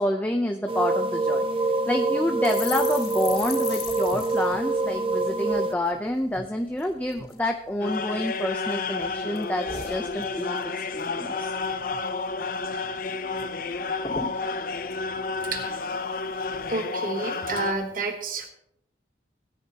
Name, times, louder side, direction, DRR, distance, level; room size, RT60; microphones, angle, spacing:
voice 1, 0.0-1.4 1.9-10.6 10.9-11.5, left 1 dB, 10° left, 3 dB, 0.6 m, -28 dB
sound 1, 0.7-5.7, right 2 dB, 30° right, 0.6 m, -25 dB
sound 2, 2.4-6.0 6.3-6.5 6.8-7.4 7.9-8.7 9.0-10.7 11.0-11.2 11.5-12.1 12.4-12.5 12.8-13.5 13.7-13.8 14.0-15.9 16.4-16.7, left 4 dB, 25° left, 4.0 m, -39 dB
sound 3, 7.8-17.7, left 4 dB, 50° left, 0.6 m, -31 dB
voice 2, 15.4-15.8 16.7-18.5, right 3 dB, 45° right, 4 dB, 1.1 m, -30 dB
17.5 x 9.9 x 2.9 m, 0.75 s
head